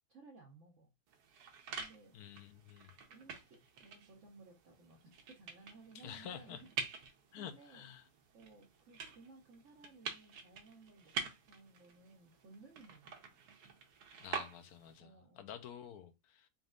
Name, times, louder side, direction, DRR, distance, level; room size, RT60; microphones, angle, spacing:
voice 1, 0.1-0.9 1.7-2.5 3.1-6.7 7.3-13.4 15.0-15.5, right 3 dB, 55° right, 1.1 m, -59 dB
sound 1, 1.1-15.0, right 5 dB, 85° right, 1.4 m, -47 dB
voice 2, 2.1-2.9 5.9-6.6 7.3-8.1 14.2-16.5, left 9 dB, 80° left, 1.2 m, -49 dB
4.1 x 3.5 x 2.4 m
omnidirectional pair, 1.6 m